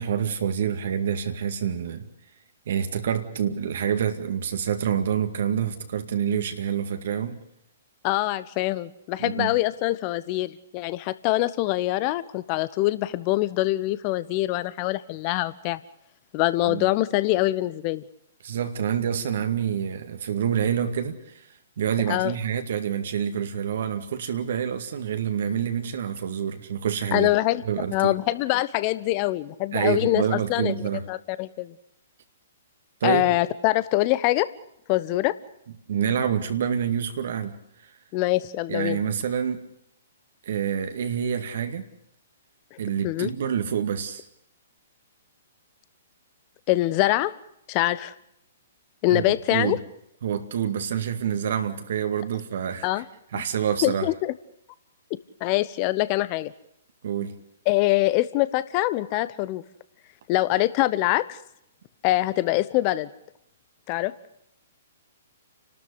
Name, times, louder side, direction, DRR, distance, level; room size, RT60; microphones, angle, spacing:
voice 1, 0.0-2.1 2.7-7.4 9.2-9.5 16.7-16.9 18.4-21.4 21.8-27.3 27.6-28.1 29.7-31.1 33.0-33.3 35.9-37.6 38.7-39.7 40.5-41.9 42.8-44.2 49.1-49.2 49.5-49.8 50.2-53.0 53.3-54.1 57.0-57.4, right 8 dB, 60° right, 2.2 m, -27 dB
voice 2, 8.0-15.8 16.3-18.0 22.1-22.3 27.1-27.6 27.9-30.7 31.1-31.7 33.0-34.5 34.9-35.4 38.1-39.0 43.0-43.3 46.7-47.3 47.7-48.1 49.0-49.8 52.8-53.0 53.3-53.4 53.8-54.3 55.4-56.5 57.7-59.6 60.3-61.4 62.0-63.1 63.9-64.1, left 17 dB, 35° left, 1.1 m, -24 dB
30.0 x 13.0 x 8.3 m
figure-of-eight pair, 120°, 0 cm